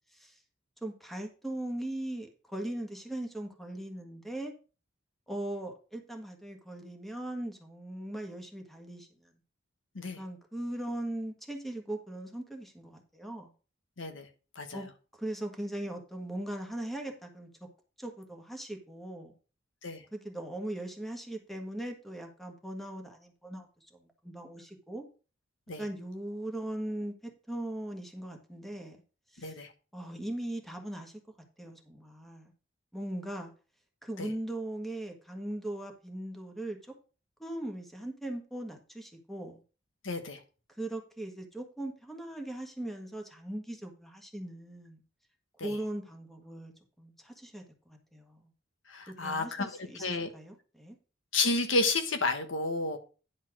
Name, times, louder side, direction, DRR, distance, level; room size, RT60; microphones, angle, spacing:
voice 1, 0.8-4.5 5.3-9.3 10.2-13.5 14.7-14.9 15.2-17.5 18.0-19.3 20.1-25.0 25.8-29.0 29.3-29.5 29.9-31.2 31.6-32.5 32.9-33.5 34.0-36.9 37.4-39.6 40.8-45.0 45.6-46.7 47.0-48.5 49.1-51.0, right 1 dB, ahead, 3 dB, 1.5 m, -39 dB
voice 2, 14.0-14.3 14.5-14.8 19.8-20.0 25.7-25.8 29.4-29.7 34.2-34.3 40.0-40.4 45.6-45.7 48.9-49.7 50.0-50.3 51.3-53.0, left 3 dB, 80° left, 7 dB, 1.3 m, -31 dB
10.0 x 4.4 x 6.0 m, 0.35 s
head